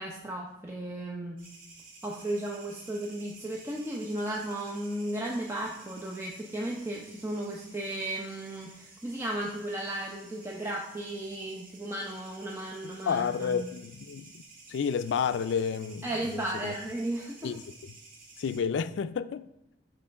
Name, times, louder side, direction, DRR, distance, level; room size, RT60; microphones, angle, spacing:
voice 1, 0.0-1.4 2.0-13.7 16.0-17.5, right 1 dB, 15° right, 0.7 m, -35 dB
sound 1, 1.4-18.6, right 3 dB, 50° right, 2.3 m, -53 dB
voice 2, 13.1-14.3 14.7-16.8 17.4-17.6 18.4-19.5, left 6 dB, 80° left, 0.3 m, -30 dB
7.6 x 4.3 x 5.7 m
head